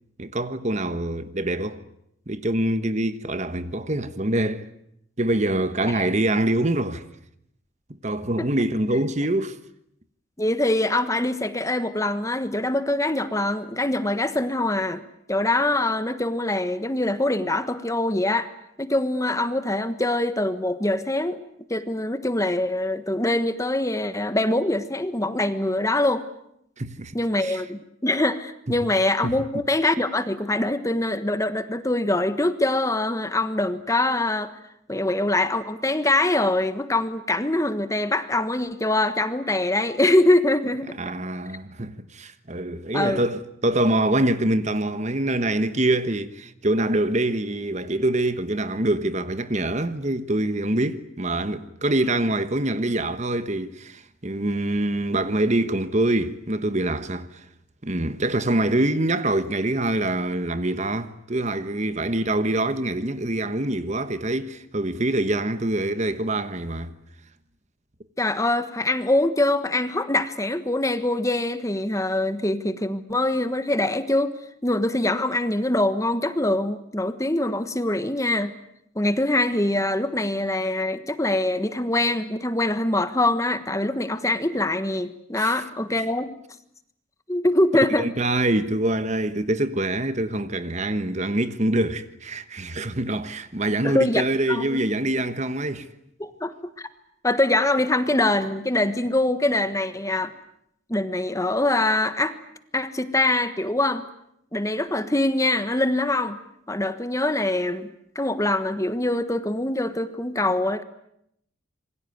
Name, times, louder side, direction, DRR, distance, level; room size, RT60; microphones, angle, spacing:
voice 1, 0.2-1.8 2.3-4.6 5.2-7.0 8.0-9.6 26.8-27.6 28.7-28.8 29.2-29.4 41.0-57.4 57.8-66.9 85.4-85.5 87.7-95.9, right 1 dB, 35° right, 1.3 m, -25 dB
voice 2, 10.4-15.0 15.3-18.5 18.8-21.4 21.7-26.3 27.1-34.5 34.9-41.0 42.9-43.2 68.2-74.4 74.6-78.5 78.9-86.3 87.3-88.1 93.8-94.8 96.2-96.9 97.2-100.3 100.9-102.4 102.7-104.0 104.5-106.4 106.7-110.8, left 1 dB, 15° left, 1.3 m, -24 dB
27.0 x 22.5 x 9.5 m
head